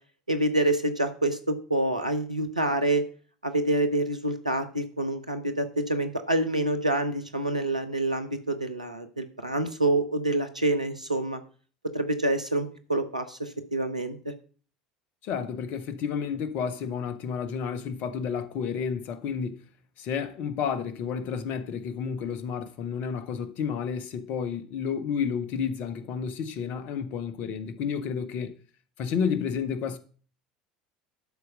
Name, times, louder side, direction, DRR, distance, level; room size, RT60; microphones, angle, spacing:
voice 1, 0.3-3.0 3.4-11.4 11.9-14.3, right 1 dB, 90° right, 1.0 m, -27 dB
voice 2, 15.2-19.6 20.0-28.6 29.0-30.0, left 7 dB, 50° left, 1.2 m, -31 dB
12.0 x 4.7 x 6.4 m
figure-of-eight pair, 70°, 4 cm